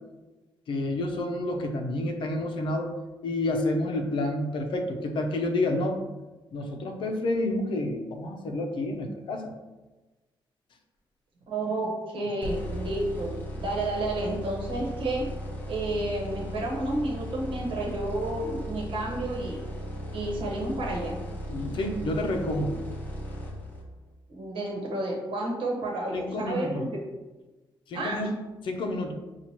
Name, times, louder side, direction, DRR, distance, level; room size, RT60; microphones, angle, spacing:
voice 1, 0.7-3.0 3.2-6.0 6.5-9.5 21.5-22.8 26.1-26.9 27.9-28.3 28.6-29.1, left 1 dB, 75° left, 3 dB, 0.6 m, -29 dB
voice 2, 11.5-15.2 15.7-19.6 20.1-21.2 24.3-27.0 27.9-28.2, right 2 dB, 80° right, -2 dB, 1.1 m, -31 dB
sound 1, 12.4-24.1, equal, 20° left, 0.6 m, -37 dB
5.8 x 2.4 x 2.9 m, 1.1 s
wide cardioid pair, 165°, 9 cm